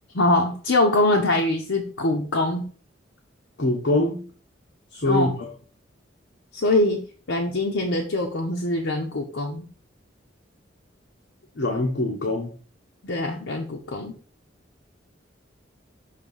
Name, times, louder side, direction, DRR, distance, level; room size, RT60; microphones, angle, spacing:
voice 1, 0.1-2.7 5.1-5.3 6.5-7.0 7.3-9.7 13.0-14.1, left 2 dB, 80° left, 1 dB, 0.8 m, -23 dB
voice 2, 3.6-4.2 4.9-5.5 11.5-12.5, left 2 dB, 65° left, 0 dB, 1.1 m, -24 dB
6.5 x 2.8 x 5.4 m, 0.41 s
head